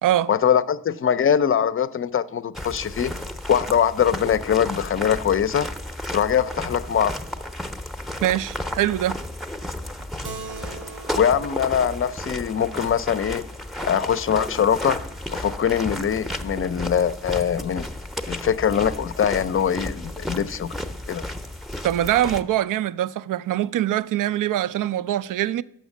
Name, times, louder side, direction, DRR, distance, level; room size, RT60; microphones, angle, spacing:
voice 1, 0.3-3.1 3.5-5.7 6.1-7.1 11.2-13.4 13.8-15.0 15.3-17.9 18.3-20.7 21.1-21.2, left 8 dB, 35° left, 0.5 m, -22 dB
sound 1, 2.5-22.4, left 1 dB, ahead, 0.7 m, -33 dB
voice 2, 8.2-9.2 21.8-25.6, right 12 dB, 55° right, 0.4 m, -23 dB
Keyboard (musical), 10.2-15.1, right 4 dB, 75° right, 1.1 m, -43 dB
6.2 x 6.0 x 7.2 m
supercardioid pair, 50°, 39 cm